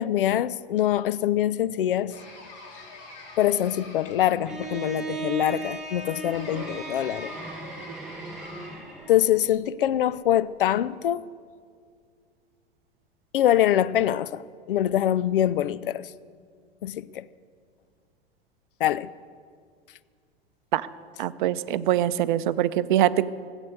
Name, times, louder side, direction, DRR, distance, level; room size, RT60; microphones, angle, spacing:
voice 1, 0.0-2.1 3.4-7.3 9.1-11.3 13.3-16.1 16.8-17.3 18.8-19.1, left 11 dB, 60° left, 0.5 m, -24 dB
sound 1, 2.1-4.6 6.3-9.0, left 2 dB, 35° left, 3.0 m, -45 dB
Bowed string instrument, 4.5-9.3, right 4 dB, ahead, 2.5 m, -36 dB
voice 2, 21.2-23.3, right 12 dB, 50° right, 0.6 m, -23 dB
18.0 x 8.1 x 7.8 m
figure-of-eight pair, 85°, 31 cm